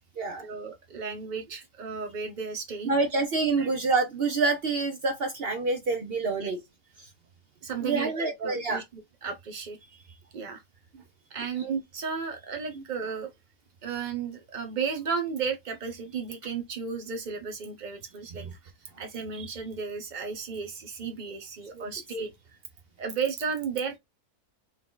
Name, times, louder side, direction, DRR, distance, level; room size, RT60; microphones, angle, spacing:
voice 1, 0.4-2.9 3.6-3.8 6.4-6.5 7.6-8.8 9.2-10.6 11.3-13.3 13.8-18.5 19.0-22.3 23.0-24.0, right 5 dB, 90° right, 0.4 m, -34 dB
voice 2, 2.8-6.6 7.0-7.1 7.8-8.8 12.7-12.8 18.4-18.5 21.7-21.8, right 3 dB, 55° right, 0.7 m, -27 dB
4.5 x 2.3 x 3.7 m
omnidirectional pair, 1.6 m